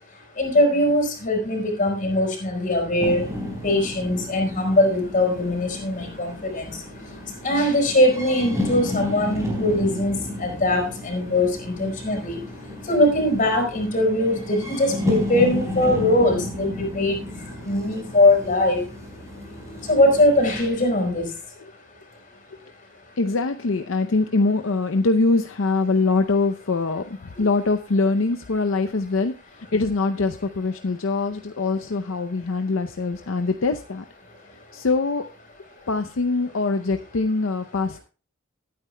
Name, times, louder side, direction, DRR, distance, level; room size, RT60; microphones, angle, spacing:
voice 1, 0.4-3.2 3.6-6.7 7.4-12.4 12.9-17.2 17.6-18.8 19.9-21.2, left 1 dB, 40° left, 3 dB, 4.9 m, -21 dB
sound 1, 3.0-20.7, left 1 dB, 15° right, 4.1 m, -32 dB
voice 2, 23.2-34.0 34.7-35.3 35.9-38.0, left 3 dB, 70° left, 7 dB, 0.6 m, -23 dB
19.5 x 9.4 x 2.2 m, 0.35 s
head